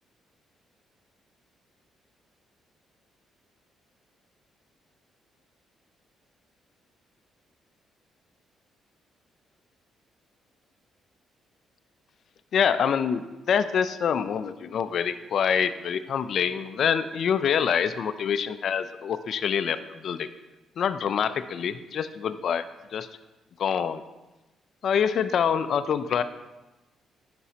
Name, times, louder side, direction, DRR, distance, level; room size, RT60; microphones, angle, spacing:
voice 1, 12.5-20.3 20.8-22.6 22.9-23.1 23.6-24.0 24.8-26.2, left 7 dB, 60° left, 12 dB, 0.4 m, -26 dB
9.6 x 6.0 x 2.8 m, 1.1 s
cardioid pair, 90°, 0 cm